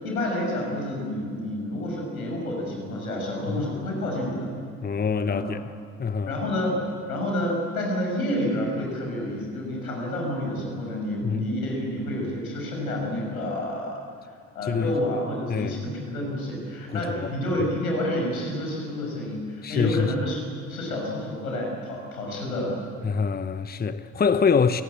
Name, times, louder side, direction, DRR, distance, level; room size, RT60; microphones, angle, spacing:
voice 1, 0.0-4.5 5.2-5.5 6.3-6.8 7.1-14.0 14.5-20.4 20.7-22.8, left 1 dB, 85° left, 6.7 m, -29 dB
voice 2, 4.8-5.6 6.0-6.4 11.2-11.5 14.6-15.0 15.5-15.8 16.9-17.3 19.6-20.1 23.0-24.8, left 5 dB, 20° left, 1.1 m, -25 dB
29.0 x 18.5 x 8.6 m
figure-of-eight pair, 55°, 42 cm